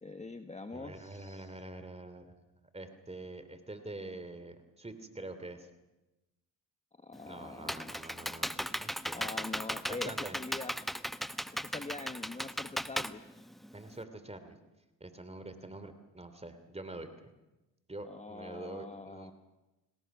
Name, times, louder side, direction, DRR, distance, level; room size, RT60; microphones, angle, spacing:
voice 1, 0.0-1.5 7.0-7.9 9.1-10.7 11.6-13.2 18.0-19.3, left 3 dB, 15° left, 7 dB, 1.3 m, -44 dB
voice 2, 0.7-2.4 2.7-5.7 7.2-9.2 9.9-10.4 13.7-14.6 15.0-17.3 17.9-19.3, right 2 dB, 15° right, 10 dB, 2.9 m, -45 dB
Computer keyboard, 7.1-14.0, equal, ahead, 0.8 m, -37 dB
29.5 x 19.0 x 6.1 m, 1.0 s
supercardioid pair, 70°, 41 cm